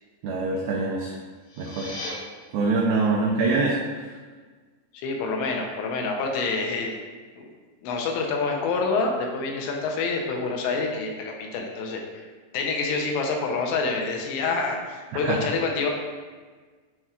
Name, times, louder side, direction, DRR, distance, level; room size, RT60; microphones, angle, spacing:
voice 1, 0.2-1.2 1.6-1.9 2.5-4.1 15.1-15.4, right 3 dB, 90° right, -2 dB, 2.1 m, -24 dB
sound 1, 1.3-2.1, left 2 dB, 60° left, 2.1 m, -37 dB
voice 2, 4.9-7.0 7.3-7.5 7.8-12.3 12.5-15.9, left 4 dB, 85° left, 1 dB, 3.1 m, -27 dB
9.9 x 4.3 x 2.5 m, 1.4 s
omnidirectional pair, 5.1 m